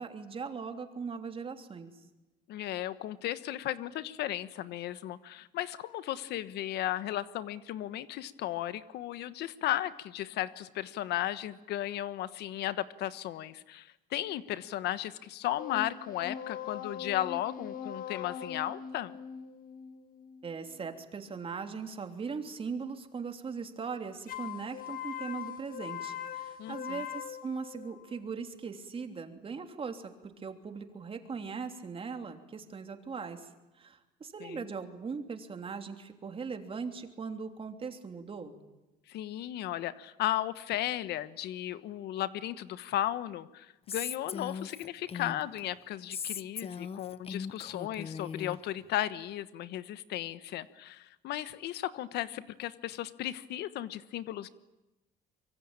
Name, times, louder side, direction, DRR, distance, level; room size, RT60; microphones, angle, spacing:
voice 1, 0.0-1.9 20.4-38.5, right 5 dB, 35° right, 6 dB, 3.2 m, -40 dB
voice 2, 2.5-19.1 26.6-27.0 34.4-34.6 39.1-54.5, left 13 dB, 75° left, 14 dB, 1.2 m, -35 dB
sound 1, 15.6-20.9 24.3-28.2, left 9 dB, 55° left, 1.7 m, -41 dB
Female speech woman speaking, 43.9-45.6 46.1-48.6, left 6 dB, 35° left, 0.9 m, -39 dB
24.5 x 23.5 x 8.9 m, 1.0 s
cardioid pair, 110°, 17 cm